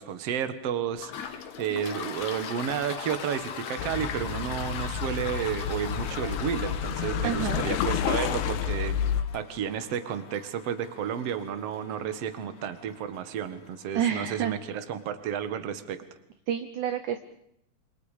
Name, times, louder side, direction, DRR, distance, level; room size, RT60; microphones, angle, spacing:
voice 1, 0.0-9.0 9.3-16.0, right 8 dB, 55° right, 11 dB, 2.0 m, -32 dB
Toilet flush, 0.9-14.3, left 8 dB, 60° left, 2.2 m, -41 dB
sound 1, 3.8-9.2, left 8 dB, 90° left, 3.2 m, -30 dB
voice 2, 7.2-7.6 14.0-14.6 16.5-17.2, right 9 dB, 70° right, 9 dB, 2.0 m, -28 dB
27.5 x 27.0 x 5.1 m, 0.77 s
omnidirectional pair, 4.6 m